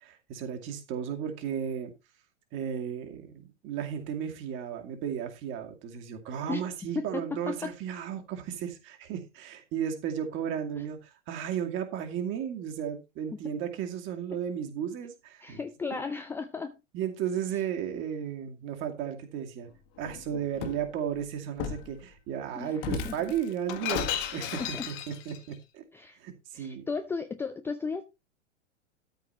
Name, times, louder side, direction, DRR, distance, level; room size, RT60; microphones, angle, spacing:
voice 1, 0.0-1.9 2.5-15.6 15.9-16.0 16.9-19.7 20.0-25.8 26.2-26.8, right 8 dB, 35° right, 2.4 m, -34 dB
voice 2, 6.9-7.7 13.3-13.4 15.4-16.7 17.5-17.6 22.5-22.8 23.0-23.2 24.5-24.9 25.9-26.2 26.5-28.0, left 4 dB, 5° left, 0.6 m, -35 dB
Shatter, 20.0-20.9 21.6-21.9 22.8-25.4, left 8 dB, 35° left, 1.7 m, -34 dB
13.0 x 4.8 x 5.6 m
figure-of-eight pair, 100°, 36 cm